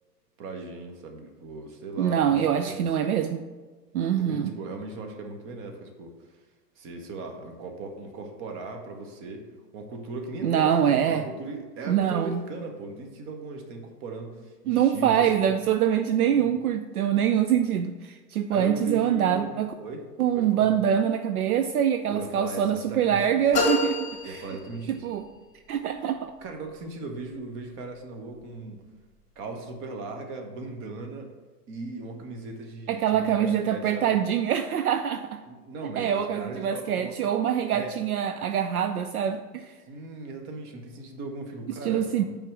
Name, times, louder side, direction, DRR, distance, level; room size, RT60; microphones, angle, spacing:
voice 1, 0.4-2.9 4.2-6.1 6.8-9.4 9.7-15.6 16.3-16.6 18.5-20.0 20.3-20.7 22.1-23.4 24.2-25.1 26.4-28.8 29.4-31.3 31.7-34.1 35.4-37.2 37.7-37.9 39.9-42.2, right 3 dB, 25° right, 4 dB, 1.0 m, -38 dB
voice 2, 2.0-3.5 3.9-4.5 10.4-11.3 11.9-12.4 14.7-19.7 20.2-24.4 24.9-25.3 25.7-26.3 32.9-35.4 35.8-39.7 41.7-42.2, right 9 dB, 65° right, 8 dB, 0.5 m, -24 dB
sound 1, 23.5-25.2, left 3 dB, 15° left, 1.5 m, -28 dB
8.7 x 3.5 x 6.2 m, 1.3 s
figure-of-eight pair, 100°, 48 cm